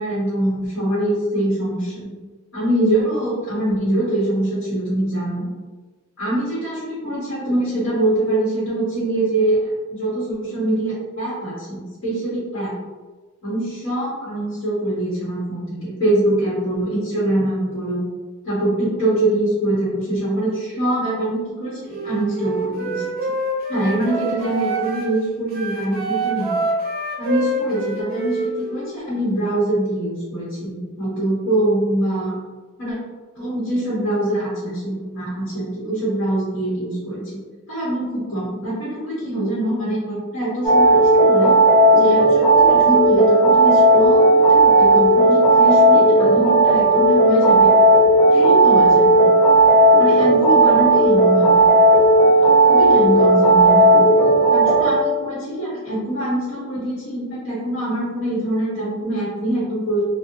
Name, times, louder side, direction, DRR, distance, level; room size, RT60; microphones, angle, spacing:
voice 1, 0.0-2.1 2.5-5.4 6.2-9.6 9.9-12.7 13.4-18.0 18.4-23.0 23.7-26.5 27.2-32.3 32.8-33.0 33.3-37.4 37.7-41.6 41.9-47.7 48.3-49.3 50.0-51.6 52.7-54.0 54.5-60.0, right 1 dB, 60° left, -8 dB, 0.9 m, -23 dB
Wind instrument woodwind instrument, 21.9-25.1 25.5-28.9, right 2 dB, 45° right, 0.5 m, -26 dB
sound 1, 40.6-54.9, right 1 dB, 10° left, 0.4 m, -13 dB
2.6 x 2.0 x 2.6 m, 1.3 s
head